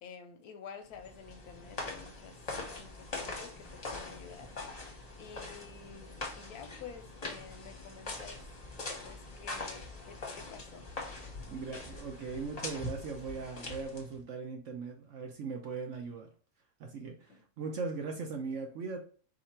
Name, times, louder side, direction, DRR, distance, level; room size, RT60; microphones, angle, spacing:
voice 1, 0.0-2.4 2.7-8.5 8.7-10.9 17.3-17.4, left 6 dB, 75° left, 1.0 m, -51 dB
sound 1, 0.9-14.2, left 2 dB, 30° left, 0.8 m, -43 dB
voice 2, 11.5-16.3 16.8-19.0, right 4 dB, 60° right, 0.8 m, -39 dB
4.1 x 2.9 x 4.3 m
omnidirectional pair, 1.8 m